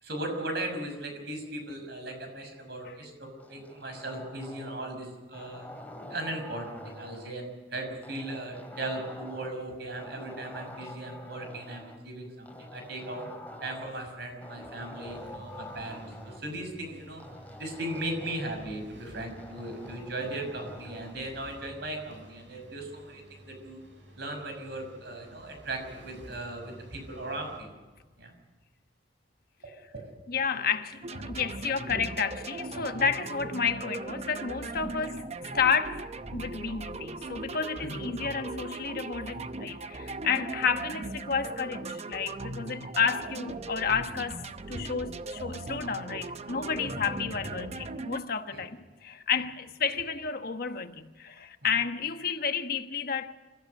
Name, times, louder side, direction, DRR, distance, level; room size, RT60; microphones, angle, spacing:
voice 1, 0.0-5.7 6.1-13.2 13.6-17.2 17.6-23.8 24.2-27.7 28.2-28.3 30.5-30.7 35.5-35.6 37.8-38.0 40.0-40.2 42.7-42.8 46.8-47.1 47.3-47.5 48.5-48.6 51.6-51.7, right 1 dB, 65° right, 6.2 m, -38 dB
sound 1, 3.4-5.0 5.3-7.4 8.0-9.7 10.0-12.0 12.5-14.0 14.4-16.4 17.2-18.7 19.2-21.2, left 1 dB, 10° left, 2.6 m, -46 dB
sound 2, 15.0-27.6, right 1 dB, 80° right, 7.6 m, -52 dB
voice 2, 30.3-35.3 35.5-36.1 36.3-53.3, left 6 dB, 55° left, 1.2 m, -31 dB
sound 3, 31.0-48.2, right 3 dB, 35° right, 0.7 m, -39 dB
27.5 x 15.0 x 6.6 m
head